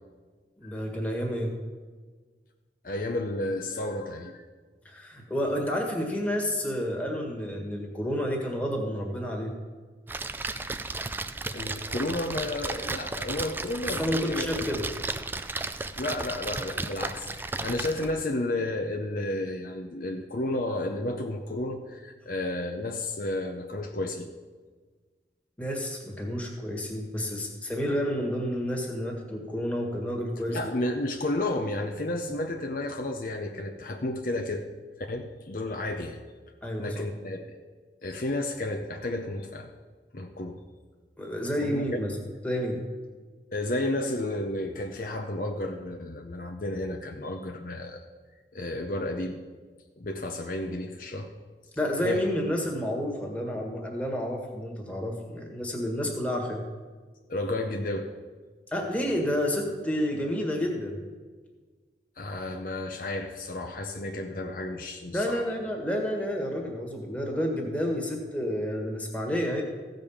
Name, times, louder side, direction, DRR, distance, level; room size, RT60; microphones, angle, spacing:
voice 1, 0.6-1.5 4.8-9.6 14.0-14.9 25.6-30.6 36.6-37.0 41.2-42.2 42.4-42.8 51.8-56.6 58.7-61.0 65.1-69.6, equal, 10° left, 0 dB, 1.7 m, -30 dB
voice 2, 2.8-4.4 11.5-14.5 15.9-24.3 30.5-34.6 35.0-36.2 36.8-37.6 38.0-39.7 40.1-40.6 41.6-42.0 43.5-48.0 48.5-49.4 50.0-51.3 52.0-52.2 57.3-58.1 62.2-65.4, left 1 dB, 50° left, 3 dB, 0.7 m, -32 dB
Splash splatter, 10.1-18.2, right 3 dB, 10° right, 0.3 m, -34 dB
15.5 x 5.3 x 7.1 m, 1.4 s
head